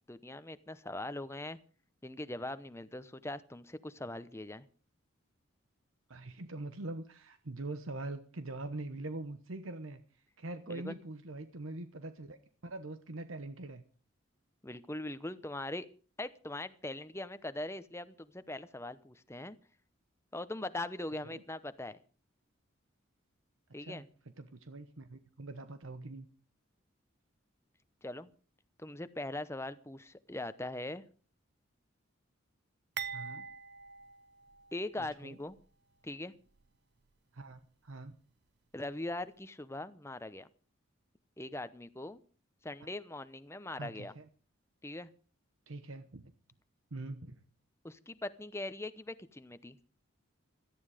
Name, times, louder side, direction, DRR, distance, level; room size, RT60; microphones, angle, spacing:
voice 1, 0.1-1.6 2.0-4.7 10.7-11.0 14.6-15.9 16.2-19.6 20.3-22.0 23.7-24.1 28.0-28.3 28.8-31.0 34.7-35.6 36.0-36.3 38.7-40.5 41.4-42.2 42.6-44.1 44.8-45.1 47.8-49.8, left 1 dB, 15° left, 13 dB, 0.8 m, -41 dB
voice 2, 6.1-10.0 10.4-12.4 12.6-13.8 21.2-21.4 23.8-24.0 24.4-26.3 33.1-33.4 35.0-35.4 37.3-38.1 42.8-42.9 43.8-44.3 45.7-46.2 46.9-47.4, right 2 dB, 80° right, 10 dB, 1.1 m, -43 dB
sound 1, 33.0-35.1 35.5-35.6 36.5-36.7, right 7 dB, 55° right, 0.9 m, -43 dB
17.5 x 14.0 x 5.1 m, 0.39 s
head